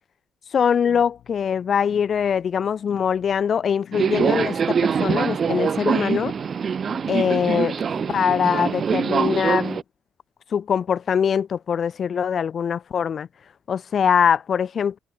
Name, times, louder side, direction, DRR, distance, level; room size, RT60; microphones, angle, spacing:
voice 1, 0.5-6.3 7.1-7.8 8.1-9.8 10.5-13.3 13.7-15.0, left 7 dB, 55° left, 1.3 m, -22 dB
sound 1, 0.8-9.8, left 11 dB, 75° left, 4.0 m, -51 dB
Subway metro underground, 3.9-9.8, right 6 dB, 45° right, 0.9 m, -24 dB
cardioid pair, 90°, 0 cm